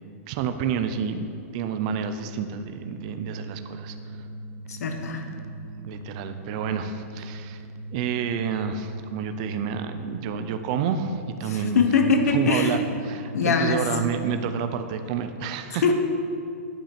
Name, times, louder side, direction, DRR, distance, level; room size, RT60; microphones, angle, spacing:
voice 1, 0.3-4.0 5.8-7.6 7.9-11.8 12.3-15.8, right 7 dB, 25° right, 8 dB, 0.3 m, -29 dB
sound 1, 2.6-14.8, right 2 dB, 80° right, 0.6 m, -40 dB
voice 2, 4.7-5.2 11.5-12.8 13.3-13.8 15.8-15.9, left 5 dB, 80° left, 5 dB, 0.9 m, -22 dB
8.7 x 5.5 x 4.3 m, 2.4 s
supercardioid pair, 175°, 8 cm